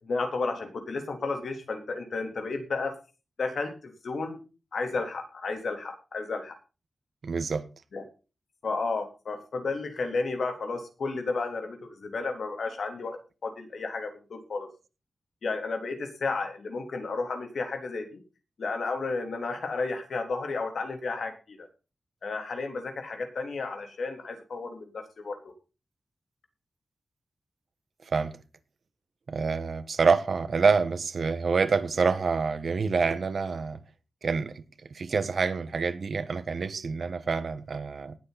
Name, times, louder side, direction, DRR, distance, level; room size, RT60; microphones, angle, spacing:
voice 1, 0.0-3.0 3.4-4.4 4.7-6.6 7.9-8.0 8.6-14.7 15.4-18.2 18.6-21.7 22.2-25.5, left 3 dB, 70° left, 3.5 m, -32 dB
voice 2, 7.2-7.7 28.1-28.4 29.3-33.8 34.2-34.5 34.9-38.2, right 5 dB, 60° right, 1.4 m, -27 dB
19.0 x 8.7 x 4.2 m
wide cardioid pair, 160°, 0 cm